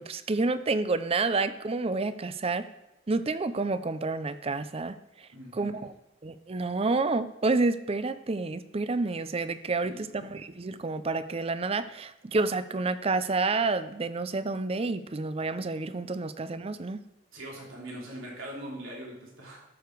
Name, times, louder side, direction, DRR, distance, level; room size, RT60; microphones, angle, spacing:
voice 1, 0.0-2.6 3.1-5.0 5.5-5.7 6.2-17.0, right 3 dB, 30° right, 13 dB, 0.5 m, -29 dB
voice 2, 5.3-5.9 9.8-10.2 17.3-19.6, right 1 dB, 75° right, -3 dB, 3.2 m, -42 dB
13.0 x 6.9 x 4.7 m, 0.94 s
head